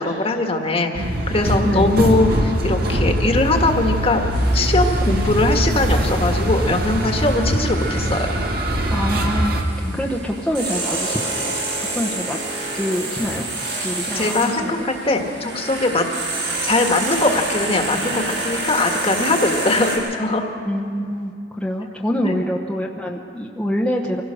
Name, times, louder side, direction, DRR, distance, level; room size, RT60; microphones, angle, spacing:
voice 1, 0.0-4.2 4.5-8.3 9.8-10.0 13.8-16.1 16.6-20.5 22.2-22.4, left 2 dB, 35° left, 4 dB, 1.6 m, -21 dB
sound 1, 0.9-9.6, right 1 dB, 60° right, 2.0 m, -21 dB
sound 2, 4.3-20.0, right 2 dB, 85° right, 6.3 m, -29 dB
voice 2, 8.9-9.6 9.9-12.4 12.7-13.5 13.8-14.9 20.6-24.2, equal, 5° left, -2 dB, 1.0 m, -25 dB
25.0 x 16.5 x 6.4 m, 2.5 s
head